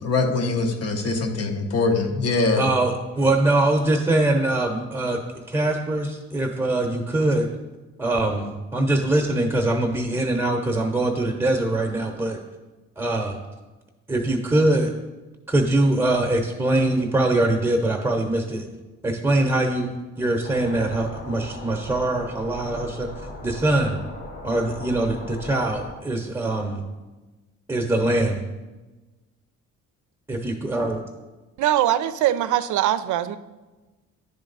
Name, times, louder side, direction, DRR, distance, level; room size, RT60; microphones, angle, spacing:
voice 1, 0.0-2.7, left 3 dB, 55° left, 5 dB, 1.0 m, -23 dB
voice 2, 2.6-5.2 5.5-7.5 8.0-12.4 13.0-13.4 14.1-14.9 15.5-18.6 19.0-19.9 20.2-23.1 23.4-24.0 24.4-26.8 27.7-28.4 30.3-31.0, right 2 dB, 10° right, 1 dB, 0.8 m, -22 dB
sound 1, 20.4-25.9, left 1 dB, 70° left, 1.8 m, -38 dB
voice 3, 31.6-33.4, right 12 dB, 75° right, 12 dB, 0.5 m, -22 dB
9.8 x 3.8 x 3.9 m, 1.2 s
cardioid pair, 90°, 30 cm